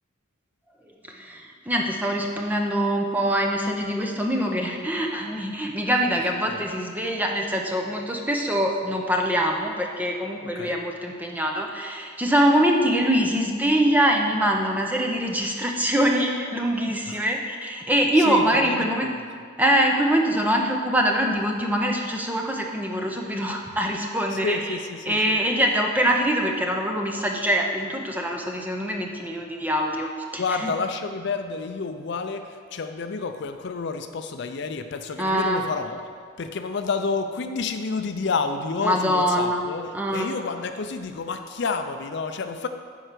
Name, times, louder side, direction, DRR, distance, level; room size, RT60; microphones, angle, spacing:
voice 1, 1.1-19.1 19.6-24.8 25.1-30.7 35.2-35.6 38.8-39.6 39.9-40.4, equal, 10° right, 1 dB, 0.7 m, -24 dB
voice 2, 18.3-19.2 24.3-25.4 30.4-36.1 36.4-42.7, left 4 dB, 55° left, 8 dB, 0.4 m, -30 dB
10.0 x 4.5 x 6.7 m, 2.1 s
head